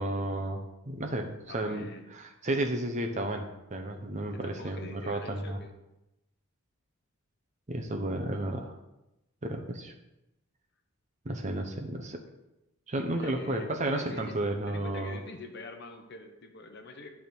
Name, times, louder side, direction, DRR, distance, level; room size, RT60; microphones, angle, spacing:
voice 1, 0.0-5.6 7.7-8.8 9.4-9.9 11.2-12.2 12.9-15.2, right 1 dB, 30° right, 4 dB, 0.7 m, -33 dB
voice 2, 1.5-2.2 4.3-5.7 13.1-17.1, left 2 dB, 50° left, 5 dB, 0.8 m, -45 dB
9.1 x 3.6 x 6.1 m, 0.93 s
head